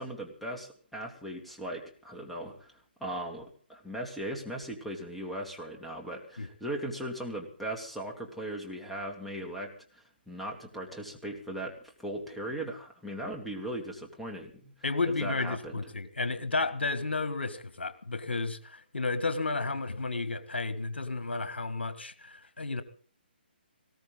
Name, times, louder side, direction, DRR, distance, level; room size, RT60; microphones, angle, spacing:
voice 1, 0.0-2.7 3.0-14.7 15.2-15.8, right 1 dB, ahead, 0 dB, 2.6 m, -38 dB
voice 2, 14.8-22.8, left 3 dB, 80° left, 11 dB, 1.7 m, -32 dB
19.5 x 17.5 x 4.0 m, 0.43 s
figure-of-eight pair, 140°, 6 cm